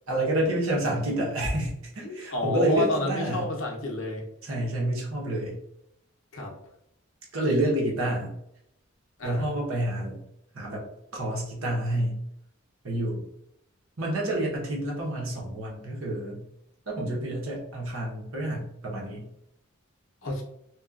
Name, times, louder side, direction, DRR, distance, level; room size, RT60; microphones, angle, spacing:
voice 1, 0.1-3.5 4.4-5.6 7.3-8.3 9.2-10.2 10.5-10.8 11.1-12.2 12.8-13.2 14.0-16.4 16.9-19.3, right 1 dB, 85° right, -2 dB, 0.9 m, -28 dB
voice 2, 2.0-4.2 6.3-6.5 9.2-9.5 20.2-20.4, left 2 dB, 65° left, 0 dB, 0.7 m, -30 dB
2.9 x 2.3 x 2.4 m, 0.77 s
head